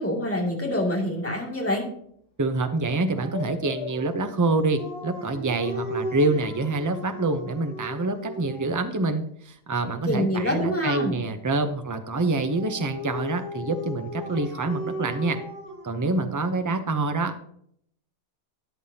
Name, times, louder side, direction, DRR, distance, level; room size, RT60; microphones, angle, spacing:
voice 1, 0.0-1.8 10.1-11.2, left 1 dB, 10° left, -2 dB, 2.4 m, -26 dB
voice 2, 2.4-15.4 15.8-17.5, right 2 dB, 30° right, 8 dB, 0.3 m, -26 dB
Dog, 3.1-9.0 12.1-16.7, left 1 dB, 90° left, 2.8 m, -37 dB
13.5 x 9.5 x 2.8 m, 0.68 s
omnidirectional pair, 1.7 m